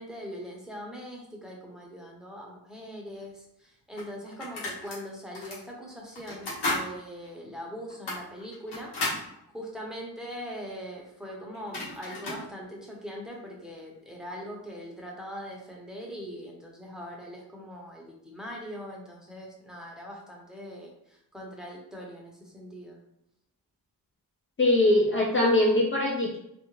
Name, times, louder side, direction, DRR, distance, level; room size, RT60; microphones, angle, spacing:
voice 1, 0.0-9.2 9.5-23.0, equal, ahead, -2 dB, 0.7 m, -41 dB
sound 1, 3.2-3.3 4.0-5.0 5.3-5.6 6.1-6.9 7.2-7.3 7.9-9.2 11.2-11.3 11.5-12.4, left 2 dB, 80° left, 1.0 m, -33 dB
voice 2, 24.6-26.4, left 1 dB, 35° left, -4 dB, 0.4 m, -22 dB
2.4 x 2.0 x 3.0 m, 0.79 s
cardioid pair, 60°, 39 cm